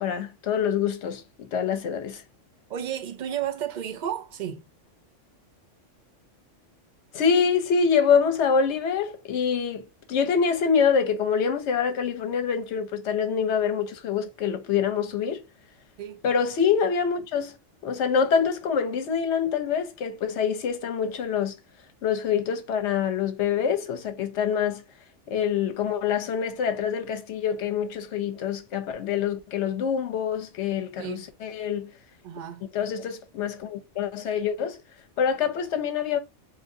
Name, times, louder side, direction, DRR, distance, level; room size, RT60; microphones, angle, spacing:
voice 1, 0.0-2.2 7.1-15.4 16.2-17.6 17.8-21.5 22.0-24.8 25.3-31.9 32.7-34.8 35.2-36.2, left 7 dB, 70° left, 1.0 m, -25 dB
voice 2, 2.7-4.7 16.0-16.2 31.0-31.3 32.2-32.7, right 10 dB, 55° right, 0.5 m, -32 dB
3.8 x 2.8 x 2.6 m
omnidirectional pair, 1.3 m